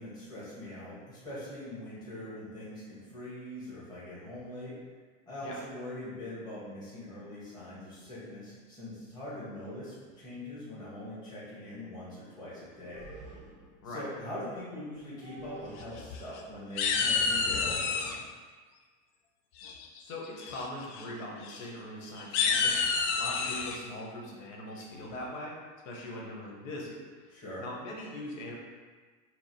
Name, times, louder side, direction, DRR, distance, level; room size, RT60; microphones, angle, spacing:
voice 1, 0.0-4.7 5.3-13.1 13.8-18.2 27.3-27.6, left 1 dB, 10° left, -10 dB, 1.1 m, -42 dB
sound 1, 7.8-7.9 9.1-9.2 9.6-9.8 10.1-10.3 12.6-13.9 14.9-15.8, right 3 dB, 20° right, 0.6 m, -50 dB
sound 2, 15.8-16.4 16.8-18.2 19.6-20.0 20.4-20.7 20.9-21.0 21.4-21.6 22.2-23.8, left 5 dB, 60° left, 0.5 m, -29 dB
voice 2, 20.0-22.8 23.2-25.5 25.8-28.6, left 1 dB, 80° left, -2 dB, 1.1 m, -41 dB
4.6 x 2.0 x 4.2 m, 1.5 s
supercardioid pair, 155°, 39 cm